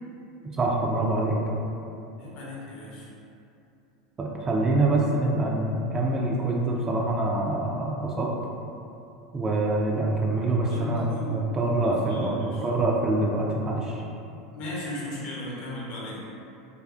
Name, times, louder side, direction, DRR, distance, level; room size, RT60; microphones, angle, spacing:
voice 1, 0.6-1.4 4.2-8.3 9.3-14.0, right 2 dB, 25° right, -2 dB, 0.3 m, -25 dB
voice 2, 2.2-3.1 10.7-11.4 11.8-12.6 14.5-16.3, left 1 dB, 55° left, -6 dB, 0.7 m, -36 dB
2.4 x 2.3 x 2.3 m, 2.7 s
hypercardioid pair, 85°, 2 cm